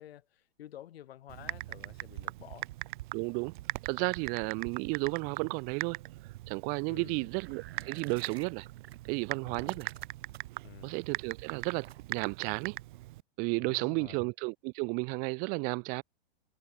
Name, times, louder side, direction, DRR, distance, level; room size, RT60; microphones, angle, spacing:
voice 1, 0.0-2.7 6.9-7.3 9.4-9.8 10.6-10.9 13.6-14.2, left 12 dB, 70° left, 4.0 m, -50 dB
Typing, 1.3-13.2, right 17 dB, 50° right, 1.4 m, -41 dB
voice 2, 3.1-3.5 3.8-6.0 6.5-8.7 9.1-9.9 10.8-12.8 13.4-16.0, right 34 dB, 25° right, 0.6 m, -33 dB
sound 1, 7.4-9.0 9.5-10.6 11.8-12.3, right 12 dB, 70° right, 2.0 m, -51 dB
hypercardioid pair, 155°, 32 cm